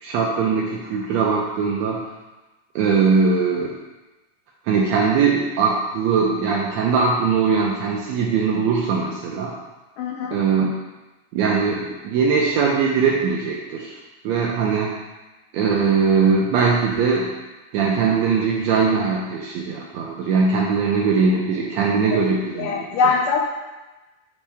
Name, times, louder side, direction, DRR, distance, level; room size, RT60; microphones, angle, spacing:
voice 1, 0.0-2.1 2.7-3.7 4.7-9.5 10.3-10.7 11.3-14.0 14.2-14.9 15.5-17.3 17.7-22.8 23.0-23.1, right 5 dB, 80° right, -2 dB, 1.6 m, -20 dB
voice 2, 10.0-10.4 22.1-22.2 22.6-23.5, left 5 dB, 80° left, 0 dB, 1.7 m, -22 dB
7.4 x 4.1 x 3.4 m, 1.1 s
omnidirectional pair, 3.7 m